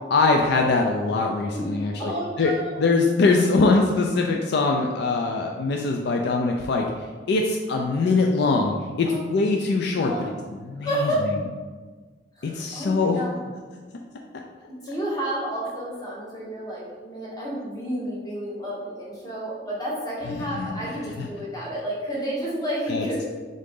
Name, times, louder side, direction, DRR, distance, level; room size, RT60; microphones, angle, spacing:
voice 1, 0.1-2.1 2.4-2.5 2.8-11.4 12.4-13.2 20.3-21.3 22.9-23.1, left 3 dB, 65° left, 2 dB, 0.4 m, -23 dB
voice 2, 1.6-2.8 9.1-9.2 10.0-10.3 10.8-11.2 12.4-13.4 14.7-23.2, right 1 dB, 20° left, -6 dB, 1.3 m, -31 dB
3.9 x 3.7 x 3.7 m, 1.4 s
head